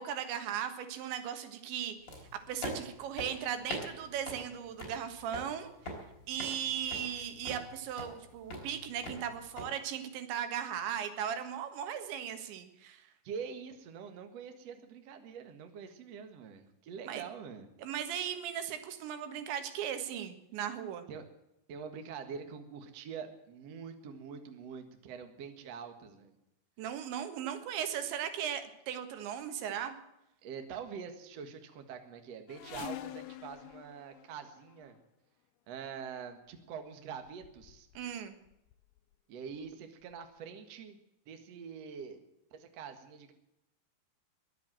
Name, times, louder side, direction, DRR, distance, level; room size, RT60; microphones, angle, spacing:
voice 1, 0.0-2.2 2.5-5.7 6.3-13.1 17.1-17.2 17.8-21.1 26.8-29.9 38.0-38.3, right 9 dB, 80° right, 8 dB, 3.8 m, -37 dB
sound 1, 2.1-9.7, left 1 dB, 25° left, 4.4 m, -44 dB
voice 2, 13.2-17.7 21.1-21.3 21.7-26.4 30.4-35.0 35.7-37.9 39.3-41.0 41.3-42.2 42.5-43.3, right 6 dB, 55° right, 7 dB, 2.0 m, -45 dB
sound 2, 32.5-35.0 35.9-36.2 36.9-37.0 37.2-38.1 38.4-39.0 39.7-39.8 40.1-40.2, left 14 dB, 75° left, 2.5 m, -47 dB
22.0 x 8.3 x 7.6 m, 0.87 s
omnidirectional pair, 5.1 m